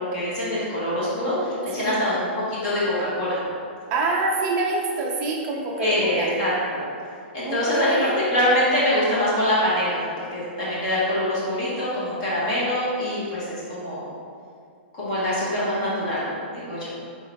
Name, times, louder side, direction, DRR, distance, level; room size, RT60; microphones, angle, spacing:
voice 1, 0.0-3.4 5.8-6.8 7.3-14.1 15.0-16.9, left 1 dB, 30° left, -9 dB, 1.2 m, -24 dB
voice 2, 3.9-6.4 7.5-8.1, right 3 dB, 20° right, -1 dB, 0.4 m, -26 dB
4.0 x 3.7 x 3.1 m, 2.3 s
hypercardioid pair, 180°, 6 cm